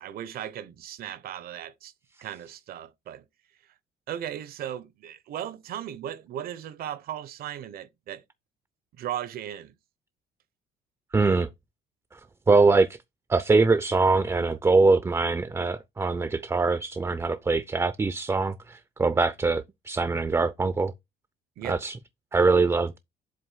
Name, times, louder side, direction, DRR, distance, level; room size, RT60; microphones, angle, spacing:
voice 1, 0.0-1.9 2.2-3.2 4.1-8.2 8.9-9.7 21.6-21.8, right 11 dB, 65° right, 0.9 m, -36 dB
voice 2, 11.1-11.5 12.5-13.0 13.3-20.9 21.6-22.0 22.3-23.0, right 3 dB, 15° right, 0.5 m, -23 dB
7.8 x 2.7 x 5.5 m
cardioid pair, 110°, 17 cm